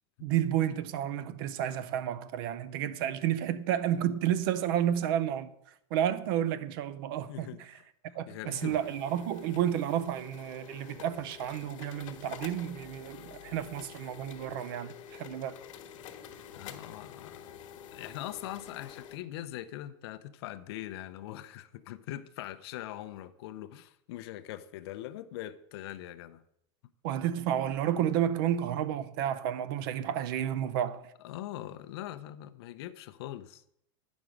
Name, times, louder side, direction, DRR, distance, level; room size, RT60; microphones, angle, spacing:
voice 1, 0.2-5.5 5.9-7.5 8.2-14.9 15.2-15.6 27.0-31.0, right 10 dB, 45° right, 0.5 m, -31 dB
voice 2, 7.3-7.9 8.3-8.8 16.5-17.5 17.9-26.4 30.6-30.7 31.2-33.6, left 13 dB, 50° left, 0.6 m, -42 dB
sound 1, 8.5-19.2, left 9 dB, 75° left, 1.2 m, -48 dB
9.6 x 6.1 x 5.1 m
supercardioid pair, 175°, 17 cm